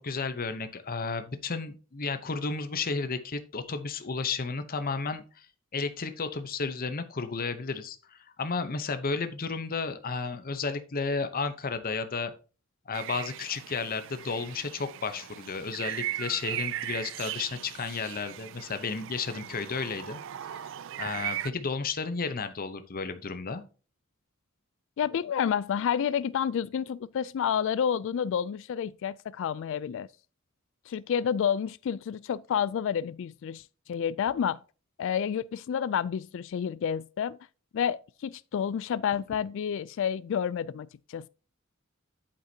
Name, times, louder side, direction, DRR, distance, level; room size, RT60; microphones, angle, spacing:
voice 1, 0.0-5.5 5.7-12.3 12.9-20.6 21.0-23.6, left 4 dB, 45° left, 0.8 m, -33 dB
sound 1, 12.9-21.5, right 13 dB, 65° right, 0.4 m, -38 dB
voice 2, 25.0-30.1 30.9-33.6 33.9-34.6 35.0-37.4 37.7-41.3, left 8 dB, 60° left, 0.3 m, -29 dB
8.5 x 8.0 x 2.8 m
head